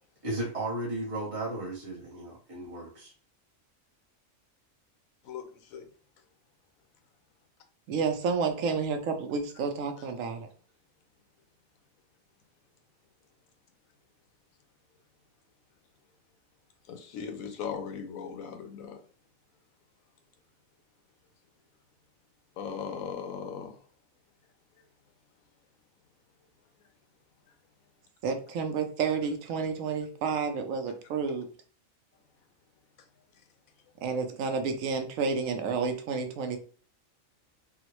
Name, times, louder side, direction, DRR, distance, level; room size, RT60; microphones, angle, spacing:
voice 1, 0.2-3.1, right 2 dB, 30° right, 0.8 m, -35 dB
voice 2, 7.9-10.5 28.2-31.5 34.0-36.6, right 5 dB, 75° right, 1.0 m, -30 dB
voice 3, 16.9-19.0 22.6-23.7, left 6 dB, 85° left, 1.1 m, -38 dB
3.7 x 2.1 x 2.9 m
omnidirectional pair, 1.4 m